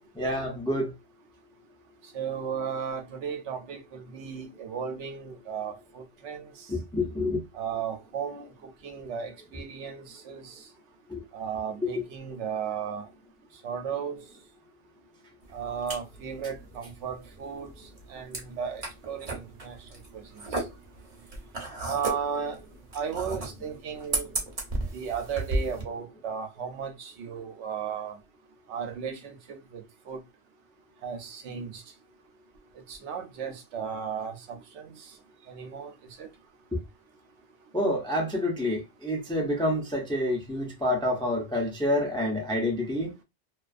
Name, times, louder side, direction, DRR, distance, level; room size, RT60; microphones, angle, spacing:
voice 1, 0.2-0.9 6.7-7.4 11.1-11.2 11.8-11.9 37.7-43.1, left 1 dB, 10° left, 0.3 m, -28 dB
voice 2, 2.1-6.4 7.5-8.5 8.8-10.4 11.3-13.1 13.6-14.2 15.5-17.7 18.1-19.8 21.8-22.6 22.9-24.3 24.9-28.2 28.7-29.3 29.7-30.2 31.0-31.8 32.9-34.9 35.5-35.9 36.2-36.3, right 7 dB, 85° right, 0.9 m, -35 dB
sound 1, 15.4-25.8, right 2 dB, 40° right, 0.6 m, -35 dB
2.4 x 2.3 x 2.4 m
omnidirectional pair, 1.1 m